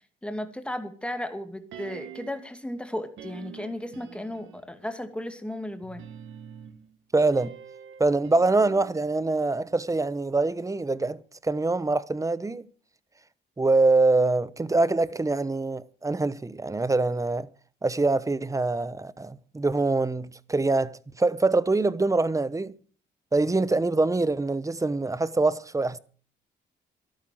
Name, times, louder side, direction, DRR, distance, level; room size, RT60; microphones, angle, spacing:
voice 1, 0.2-6.0, left 1 dB, 5° left, 2.5 m, -35 dB
sound 1, 1.7-2.5 3.2-4.8 5.8-10.0 10.3-10.4, right 9 dB, 80° right, 1.9 m, -46 dB
voice 2, 7.1-7.5 8.0-11.2 11.4-12.7 13.6-17.5 17.8-22.7 23.3-26.0, right 3 dB, 15° right, 0.9 m, -24 dB
12.5 x 12.0 x 7.7 m
cardioid pair, 90°, 20 cm